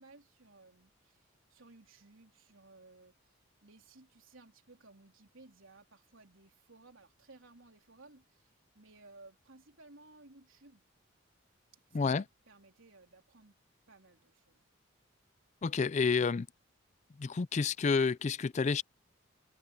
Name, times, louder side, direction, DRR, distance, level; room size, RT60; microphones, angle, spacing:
voice 1, 0.0-10.9 11.9-13.6 13.9-14.6, right 3 dB, 75° right, 3.8 m, -59 dB
voice 2, 15.6-16.5 17.2-18.8, left 5 dB, 35° left, 0.4 m, -29 dB
head